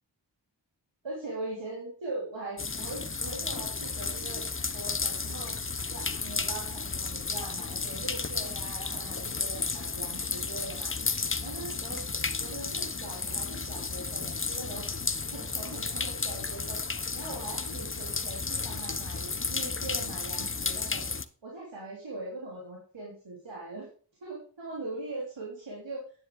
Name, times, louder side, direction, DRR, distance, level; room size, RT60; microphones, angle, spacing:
voice 1, 1.0-4.4 4.7-5.5 5.9-10.9 11.4-12.0 12.4-14.9 15.3-16.8 17.1-21.0 21.4-23.9 24.2-26.0, right 2 dB, 85° right, -5 dB, 3.3 m, -41 dB
sound 1, 2.6-21.2, left 4 dB, 30° left, 0.8 m, -33 dB
9.8 x 9.0 x 3.8 m, 0.42 s
cardioid pair, 45°, 43 cm